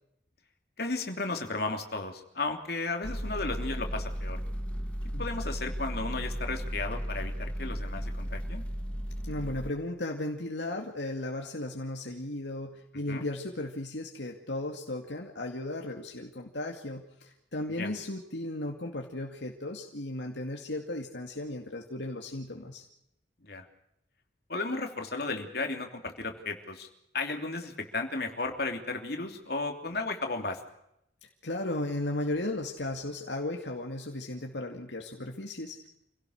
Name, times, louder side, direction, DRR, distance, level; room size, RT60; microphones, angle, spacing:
voice 1, 0.8-4.4 5.2-8.6 13.1-13.2 17.8-17.9 23.4-23.6 24.5-26.9 27.1-30.6, left 3 dB, 55° left, 4 dB, 3.1 m, -34 dB
sound 1, 3.0-9.7, equal, 5° left, 2.0 m, -35 dB
voice 2, 9.3-22.8 31.4-35.9, left 1 dB, 70° left, 2 dB, 2.3 m, -35 dB
27.5 x 17.0 x 6.5 m, 0.80 s
head